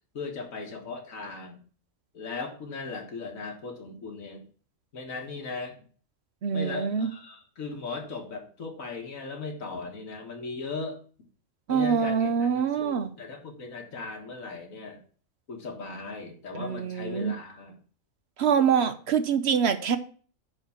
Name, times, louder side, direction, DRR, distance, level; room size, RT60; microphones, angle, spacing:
voice 1, 0.1-1.6 2.1-4.4 4.9-5.8 6.5-11.0 11.7-15.0 15.5-17.7, left 4 dB, 80° left, 2.0 m, -38 dB
voice 2, 6.4-7.1 11.7-13.1 16.6-17.4 18.4-20.0, right 7 dB, 60° right, 0.9 m, -25 dB
9.3 x 3.7 x 7.1 m
omnidirectional pair, 1.4 m